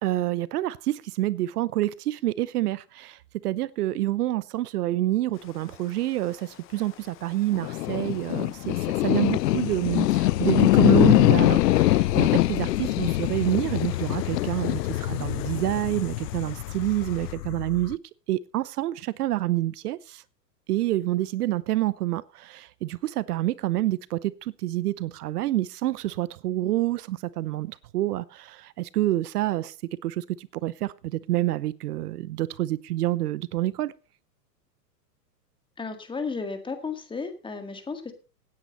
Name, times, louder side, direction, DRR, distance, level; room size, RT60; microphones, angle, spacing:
voice 1, 0.0-18.0 18.3-20.2 20.7-29.7 30.0-33.9, right 15 dB, 70° right, 0.8 m, -28 dB
Rain, 5.3-17.3, left 15 dB, 25° left, 0.9 m, -47 dB
sound 1, 7.5-17.9, left 16 dB, 75° left, 0.7 m, -23 dB
voice 2, 35.8-38.1, left 4 dB, 10° left, 1.9 m, -33 dB
16.5 x 9.5 x 4.2 m
hypercardioid pair, 130°, 49 cm